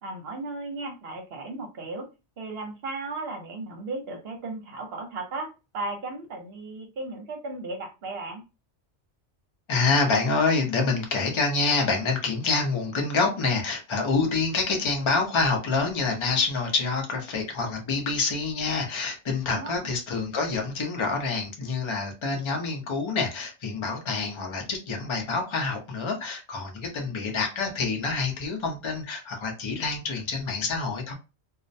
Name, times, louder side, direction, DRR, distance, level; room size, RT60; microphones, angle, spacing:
voice 1, 0.0-2.1 2.4-8.4 19.5-19.9, right 2 dB, 60° right, 0.9 m, -35 dB
voice 2, 9.7-31.1, left 4 dB, 35° left, 0.5 m, -27 dB
2.4 x 2.1 x 2.5 m
omnidirectional pair, 1.2 m